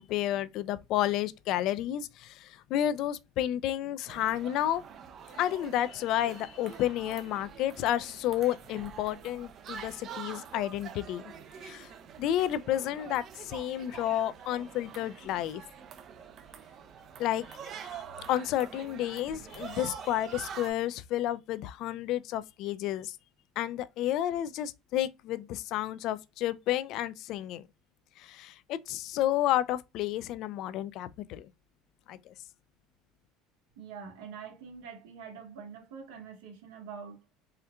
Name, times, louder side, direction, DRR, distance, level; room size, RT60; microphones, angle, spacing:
voice 1, 0.0-4.8 5.4-11.3 11.6-11.9 12.2-15.6 17.2-18.0 18.3-23.2 23.6-27.7 28.2-31.5 32.1-32.3, left 12 dB, 60° left, 0.3 m, -31 dB
sound 1, 4.1-20.7, right 7 dB, 45° right, 0.5 m, -46 dB
voice 2, 33.8-37.2, right 6 dB, 85° right, 1.5 m, -45 dB
4.3 x 2.4 x 2.2 m
supercardioid pair, 110°, 0 cm